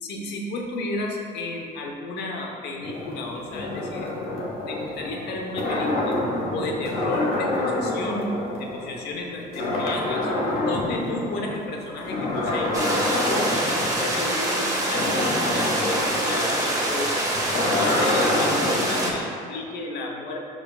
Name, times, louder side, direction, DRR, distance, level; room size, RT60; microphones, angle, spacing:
voice 1, 0.0-4.1 4.7-6.2 6.5-10.3 10.6-12.8 13.3-13.5 14.0-17.4 17.7-20.4, left 2 dB, 75° left, 0 dB, 0.9 m, -33 dB
sound 1, 2.8-9.2 9.5-11.6 12.0-19.2, left 2 dB, 60° left, 1.6 m, -27 dB
sound 2, 12.7-19.1, right 1 dB, 20° right, 1.6 m, -25 dB
11.0 x 4.9 x 2.4 m, 2.4 s
cardioid pair, 110°, 17 cm